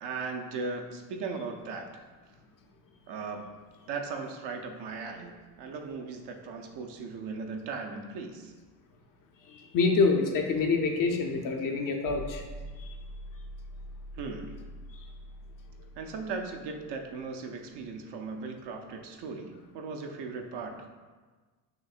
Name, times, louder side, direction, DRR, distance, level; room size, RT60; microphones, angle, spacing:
voice 1, 0.0-2.1 3.1-3.5 3.9-8.5 14.1-14.6 16.0-20.9, right 4 dB, 55° right, 3 dB, 0.6 m, -38 dB
voice 2, 9.5-12.4 12.8-12.9, left 4 dB, 45° left, 3 dB, 0.6 m, -26 dB
sound 1, 12.0-17.1, equal, 85° left, 0.7 m, -44 dB
5.9 x 2.6 x 2.4 m, 1.4 s
hypercardioid pair, 65°, 49 cm